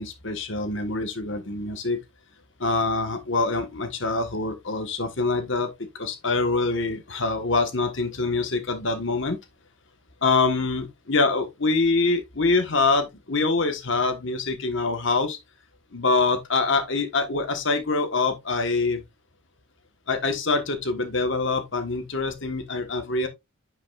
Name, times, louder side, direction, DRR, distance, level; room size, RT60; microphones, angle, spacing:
voice 1, 0.0-2.0 2.6-9.4 10.2-15.4 15.9-19.0 20.1-23.3, left 3 dB, 55° left, 1.3 m, -25 dB
10.5 x 5.8 x 2.4 m
head